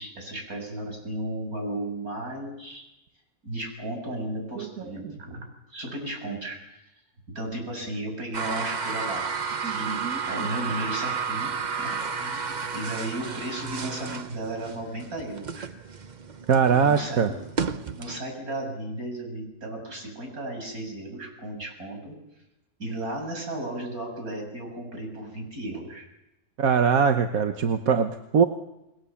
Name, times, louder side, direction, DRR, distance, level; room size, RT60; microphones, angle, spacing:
voice 1, 0.0-2.8 3.4-6.6 7.3-9.3 9.6-10.0 10.3-15.7 16.8-17.4 17.9-22.1 22.8-26.1, right 1 dB, 90° right, 3 dB, 7.8 m, -34 dB
sound 1, 8.3-18.2, right 5 dB, 35° right, 0.9 m, -32 dB
voice 2, 9.6-10.5 16.5-17.3 26.6-28.4, right 6 dB, 75° right, 6 dB, 1.5 m, -22 dB
28.5 x 21.0 x 7.1 m, 0.93 s
omnidirectional pair, 1.5 m